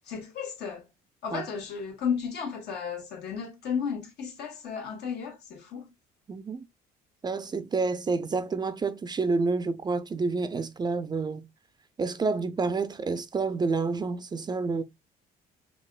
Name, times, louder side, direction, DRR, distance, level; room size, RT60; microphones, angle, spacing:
voice 1, 0.1-0.9 1.2-5.9, left 6 dB, 75° left, 1.6 m, -33 dB
voice 2, 6.3-6.6 7.2-11.5 12.0-14.8, right 4 dB, 25° right, 0.4 m, -29 dB
5.4 x 2.5 x 2.3 m
cardioid pair, 110°, 17 cm